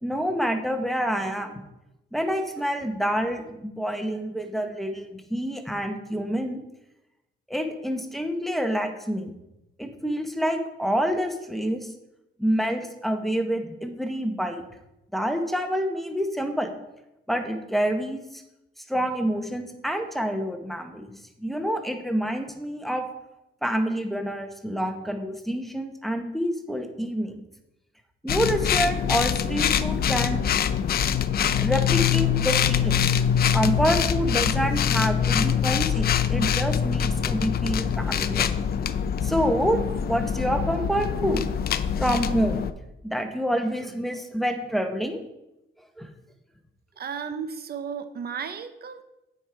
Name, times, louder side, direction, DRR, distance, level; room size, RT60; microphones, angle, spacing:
voice 1, 0.0-1.6 2.1-6.6 7.5-9.3 9.8-11.9 12.4-14.6 15.1-16.7 17.3-18.4 18.8-23.0 23.6-27.4 28.2-30.4 31.6-33.0 33.5-38.5 39.2-41.5 42.0-42.6 43.0-45.2 46.0-46.1, equal, ahead, 5 dB, 1.0 m, -27 dB
sound 1, 28.3-42.7, left 8 dB, 50° left, 0.5 m, -24 dB
voice 2, 47.0-49.0, right 7 dB, 50° right, 10 dB, 0.6 m, -34 dB
8.7 x 4.9 x 4.6 m, 0.92 s
cardioid pair, 90°, 20 cm